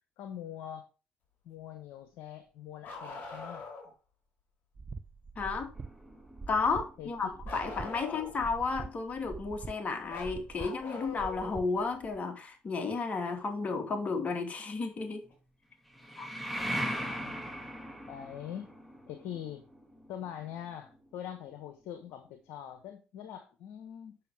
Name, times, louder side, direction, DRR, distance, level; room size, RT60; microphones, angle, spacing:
voice 1, 0.2-0.9 1.4-3.7 7.0-7.4 7.9-8.2 16.8-17.5 18.1-18.7 19.1-19.6 20.1-24.2, left 10 dB, 75° left, 1.2 m, -43 dB
Bark, 2.8-3.9 7.5-8.5 10.1-11.6 13.3-13.4 15.3-15.4 16.5-16.6, left 4 dB, 55° left, 4.2 m, -43 dB
sound 1, 4.7-12.2, right 4 dB, 30° right, 0.8 m, -45 dB
voice 2, 5.4-5.7 6.5-15.2 16.2-16.3, left 4 dB, 40° left, 2.7 m, -33 dB
sound 2, 5.7-8.4 15.9-21.5, equal, ahead, 1.9 m, -40 dB
8.4 x 6.4 x 3.5 m
supercardioid pair, 70°, 4 cm